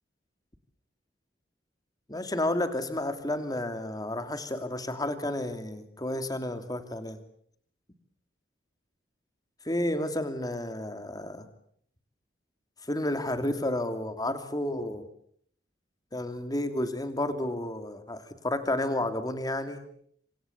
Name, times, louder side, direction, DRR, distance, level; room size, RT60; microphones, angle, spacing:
voice 1, 2.1-7.2 9.6-11.5 12.9-15.0 16.1-19.8, left 1 dB, 20° left, 9 dB, 2.7 m, -31 dB
26.5 x 26.5 x 7.1 m, 0.64 s
head